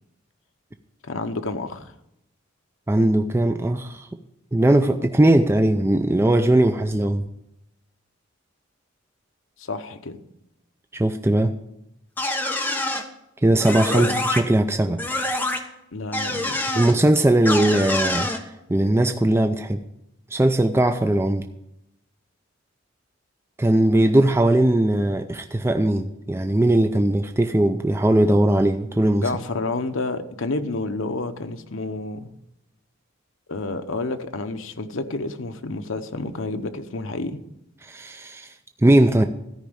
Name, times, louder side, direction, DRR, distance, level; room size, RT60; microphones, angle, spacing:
voice 1, 1.0-1.9 9.6-10.2 13.9-14.2 15.9-16.8 29.2-32.3 33.5-37.4, left 3 dB, 75° left, 8 dB, 0.9 m, -29 dB
voice 2, 2.9-4.1 4.5-7.3 10.9-11.5 13.4-15.0 16.7-18.3 18.7-19.8 20.3-21.5 23.6-29.2 37.8-38.5 38.8-39.3, right 1 dB, 10° right, 7 dB, 0.4 m, -19 dB
sound 1, 12.2-13.0 13.6-14.4 15.0-15.6 16.1-16.9 17.4-18.4, left 1 dB, 10° left, 1.0 m, -25 dB
13.5 x 5.1 x 8.7 m, 0.84 s
head